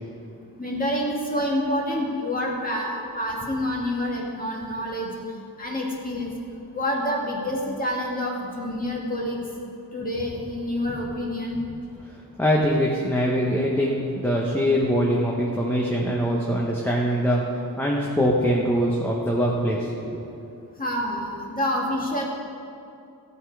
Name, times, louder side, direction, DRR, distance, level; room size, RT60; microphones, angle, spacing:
voice 1, 0.6-5.1 5.6-6.3 6.7-11.6 20.8-22.2, left 1 dB, 20° left, -3 dB, 2.0 m, -27 dB
voice 2, 12.4-17.4 17.8-20.2, equal, 5° left, -3 dB, 1.0 m, -23 dB
14.5 x 8.2 x 4.7 m, 2.6 s
wide cardioid pair, 150°, 38 cm